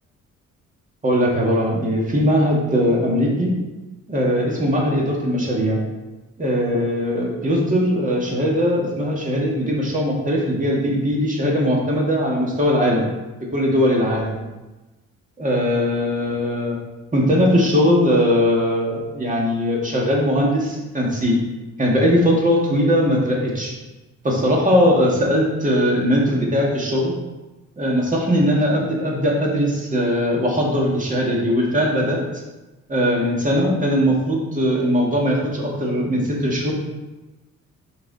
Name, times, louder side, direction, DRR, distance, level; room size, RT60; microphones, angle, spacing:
voice 1, 1.0-3.5 4.1-5.8 6.4-13.1 13.5-14.4 15.4-16.8 17.1-21.4 21.8-23.7 24.2-27.1 27.8-32.2 32.9-36.7, equal, 25° right, -2 dB, 2.0 m, -20 dB
5.6 x 4.9 x 4.1 m, 1.1 s
cardioid pair, 90°, 30 cm